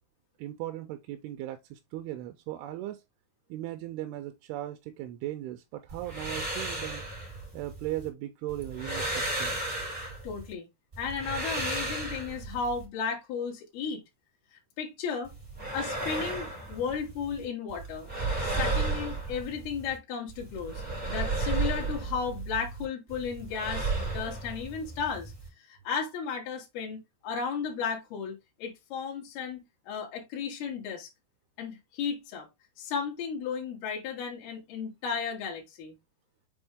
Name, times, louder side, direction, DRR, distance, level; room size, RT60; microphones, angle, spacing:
voice 1, 0.4-3.0 3.5-7.0 7.5-9.6, right 14 dB, 85° right, 2.6 m, -38 dB
sound 1, 5.9-8.1 8.5-10.5 10.9-12.8 15.2-17.4 17.7-20.0 20.3-22.8 23.1-25.5, right 3 dB, 15° right, 3.4 m, -34 dB
voice 2, 10.2-10.7 11.0-14.0 14.8-15.3 15.7-18.1 18.4-20.8 21.1-31.1 31.6-32.5 32.8-36.0, left 6 dB, 75° left, 3.6 m, -34 dB
7.1 x 4.4 x 3.6 m
omnidirectional pair, 4.5 m